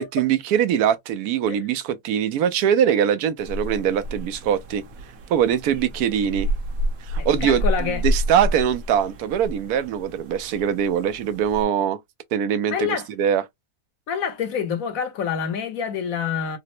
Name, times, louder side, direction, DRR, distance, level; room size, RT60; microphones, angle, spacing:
voice 1, 0.0-4.8 5.3-6.5 7.1-12.0 12.3-13.4, right 9 dB, 85° right, 1.1 m, -22 dB
sound 1, 3.4-11.7, equal, 70° right, 1.2 m, -29 dB
voice 2, 7.2-8.0 12.7-13.1 14.1-16.6, left 7 dB, 70° left, 1.2 m, -27 dB
4.1 x 2.0 x 2.7 m
omnidirectional pair, 1.6 m